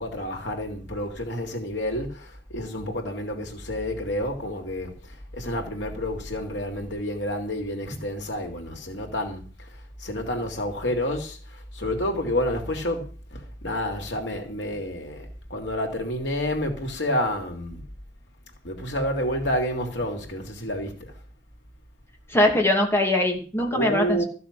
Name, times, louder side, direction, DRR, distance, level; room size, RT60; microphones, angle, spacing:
voice 1, 0.0-9.4 9.7-17.8 18.6-21.1 23.7-24.2, left 1 dB, 90° left, 3.2 m, -29 dB
voice 2, 22.3-24.2, left 1 dB, 15° left, 2.6 m, -22 dB
15.0 x 6.9 x 7.6 m
head